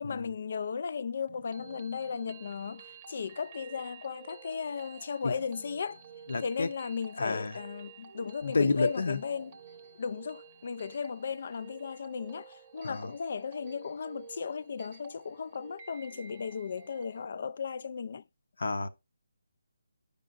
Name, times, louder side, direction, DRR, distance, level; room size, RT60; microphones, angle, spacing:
voice 1, 0.0-6.0 6.4-9.5 10.0-18.2, left 6 dB, 45° left, 0.3 m, -36 dB
sound 1, 1.3-17.3, right 7 dB, 20° right, 0.8 m, -52 dB
voice 2, 6.3-6.7 7.2-7.6 8.4-9.2 12.8-13.1 18.6-18.9, left 3 dB, 65° left, 0.8 m, -30 dB
13.5 x 5.3 x 2.5 m
hypercardioid pair, 170°, 0 cm